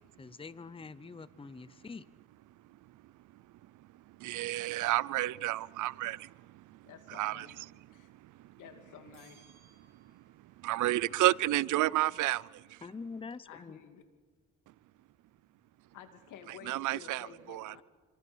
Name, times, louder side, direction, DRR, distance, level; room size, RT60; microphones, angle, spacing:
voice 1, 0.2-2.1 12.8-13.8, left 4 dB, 20° left, 0.8 m, -45 dB
voice 2, 4.2-6.3 7.1-7.5 10.6-12.8 16.7-17.8, right 16 dB, 80° right, 0.6 m, -30 dB
voice 3, 6.8-7.6 7.9-8.1 8.6-9.5 13.4-14.0 15.9-17.8, left 8 dB, 85° left, 2.7 m, -52 dB
sound 1, 9.1-10.5, right 7 dB, 60° right, 7.6 m, -64 dB
27.0 x 24.5 x 6.3 m
cardioid pair, 90°, 30 cm